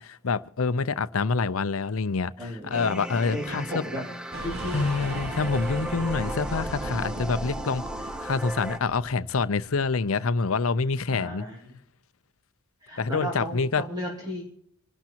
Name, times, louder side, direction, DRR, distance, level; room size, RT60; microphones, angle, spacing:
voice 1, 0.0-3.8 4.7-11.4 13.0-13.8, left 4 dB, 85° left, 0.6 m, -27 dB
voice 2, 2.4-2.7 3.3-5.2 11.1-11.6 12.8-14.4, equal, 20° right, 2.7 m, -35 dB
sound 1, 2.7-8.8, right 1 dB, 5° right, 0.8 m, -36 dB
sound 2, 4.3-9.5, right 1 dB, 55° right, 1.6 m, -37 dB
26.0 x 12.0 x 3.0 m
head